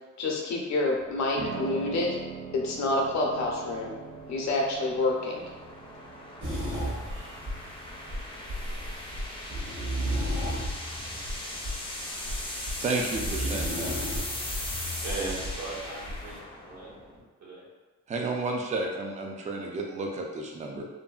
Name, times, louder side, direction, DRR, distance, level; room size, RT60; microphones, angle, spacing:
voice 1, 0.2-2.1 2.5-3.9 4.3-5.4, left 2 dB, 65° left, -1 dB, 0.7 m, -28 dB
sound 1, 1.0-17.2, left 1 dB, 20° left, 0.6 m, -40 dB
Piano, 1.4-11.3, right 5 dB, 85° right, 0.6 m, -43 dB
sound 2, 6.4-16.4, equal, 40° right, 0.9 m, -34 dB
voice 2, 12.5-14.0 18.1-20.8, right 3 dB, 25° right, 0 dB, 0.4 m, -32 dB
voice 3, 15.0-16.9 17.4-17.7, right 3 dB, 65° right, -6 dB, 1.2 m, -37 dB
2.7 x 2.6 x 2.3 m, 1.2 s
cardioid pair, 90°, 30 cm